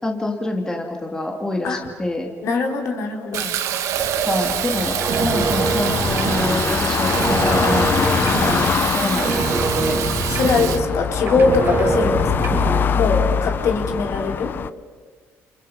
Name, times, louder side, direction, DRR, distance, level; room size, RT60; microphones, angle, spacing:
voice 1, 0.0-2.3 4.3-8.2 8.9-9.4 9.7-10.0, left 2 dB, 10° left, 1 dB, 2.7 m, -26 dB
voice 2, 2.4-3.5 6.9-7.1 8.4-9.2 10.3-12.5 12.9-14.5, left 4 dB, 60° left, 2 dB, 4.1 m, -22 dB
Fill (with liquid), 3.3-10.8, right 10 dB, 75° right, 2.0 m, -26 dB
sound 1, 4.0-14.7, left 7 dB, 40° left, 0.7 m, -24 dB
sound 2, 5.0-6.8 7.1-8.9 9.2-11.0 11.3-13.0, right 4 dB, 40° right, 2.9 m, -24 dB
29.5 x 29.5 x 5.7 m, 1.4 s
cardioid pair, 145°, 5 cm